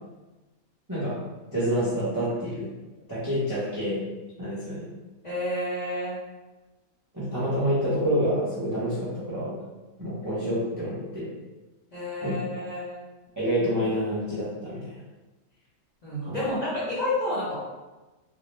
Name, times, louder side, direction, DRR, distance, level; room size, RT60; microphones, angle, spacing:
voice 1, 1.5-2.7 3.1-4.0 4.4-4.9 7.1-9.6 10.0-11.3 12.2-12.4 13.4-14.9 16.2-16.4, equal, 20° right, -10 dB, 0.6 m, -27 dB
voice 2, 5.2-6.1 11.9-13.0 16.0-17.6, left 1 dB, 40° left, -10 dB, 0.8 m, -30 dB
2.6 x 2.0 x 3.1 m, 1.1 s
omnidirectional pair, 1.4 m